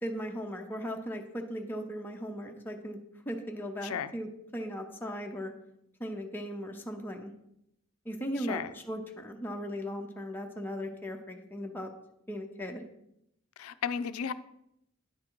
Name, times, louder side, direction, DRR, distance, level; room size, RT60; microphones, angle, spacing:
voice 1, 0.0-3.0 3.3-5.5 6.0-7.3 8.1-11.9 12.3-12.8, equal, 10° left, 1 dB, 0.6 m, -37 dB
voice 2, 8.4-8.7 13.6-14.3, left 7 dB, 80° left, 13 dB, 0.4 m, -34 dB
9.6 x 3.6 x 4.5 m, 0.79 s
head